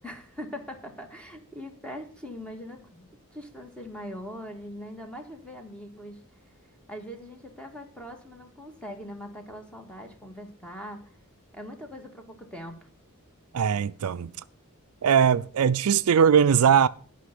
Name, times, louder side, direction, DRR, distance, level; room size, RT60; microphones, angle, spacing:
voice 1, 0.0-6.2 6.9-11.1 11.5-12.8, equal, 5° left, 1.9 m, -41 dB
voice 2, 13.5-14.3 15.0-16.9, right 7 dB, 70° right, 0.4 m, -20 dB
12.0 x 5.7 x 7.9 m
head